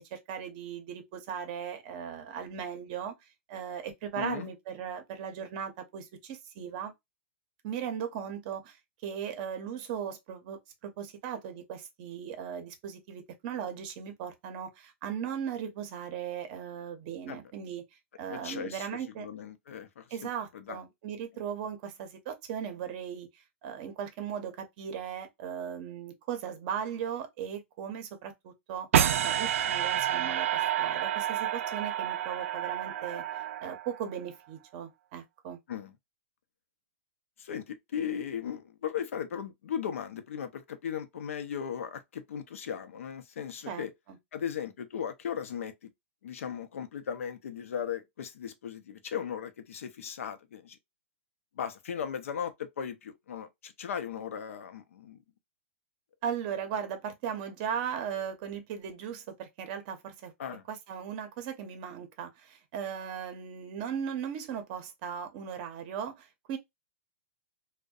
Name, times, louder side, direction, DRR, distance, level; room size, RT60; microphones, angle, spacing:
voice 1, 0.0-3.1 3.5-6.9 7.6-8.8 9.0-17.8 18.2-19.3 20.1-23.3 23.6-28.9 29.2-33.2 33.6-35.6 43.7-44.2 56.2-60.3 60.7-66.6, right 8 dB, 40° right, 0.6 m, -37 dB
voice 2, 4.2-4.5 17.3-17.4 18.3-20.0 20.5-20.8 35.7-35.9 37.4-43.9 44.3-45.9 46.2-50.8 51.6-55.2 60.4-60.6, left 8 dB, 80° left, 0.6 m, -37 dB
sound 1, 28.9-34.1, right 10 dB, 75° right, 0.3 m, -29 dB
2.6 x 2.1 x 2.3 m
hypercardioid pair, 150°, 7 cm